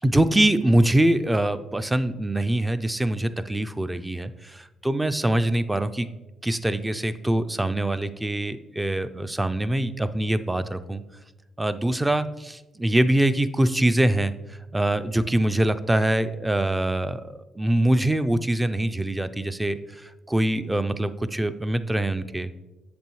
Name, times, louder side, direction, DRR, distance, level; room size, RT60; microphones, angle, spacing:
voice 1, 0.0-6.1 6.4-11.0 11.6-22.6, right 1 dB, 10° right, 11 dB, 0.4 m, -24 dB
8.3 x 6.8 x 3.0 m, 1.1 s
cardioid pair, 90°, 0 cm